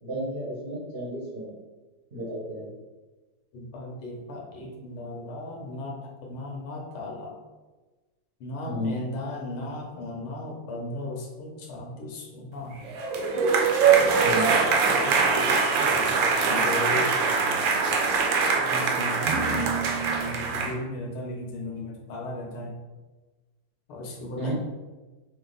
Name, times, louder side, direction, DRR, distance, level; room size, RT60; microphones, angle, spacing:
voice 1, 0.0-1.5 2.1-2.7 8.7-8.9 14.2-14.5 24.4-24.5, equal, 40° right, -8 dB, 0.8 m, -32 dB
voice 2, 3.5-7.3 8.4-12.8 14.0-17.1 18.5-22.8 23.9-24.5, left 1 dB, 85° left, -1 dB, 1.8 m, -36 dB
sound 1, 12.8-20.7, right 5 dB, 75° right, 1.3 m, -23 dB
5.7 x 2.0 x 3.8 m, 1.2 s
omnidirectional pair, 2.3 m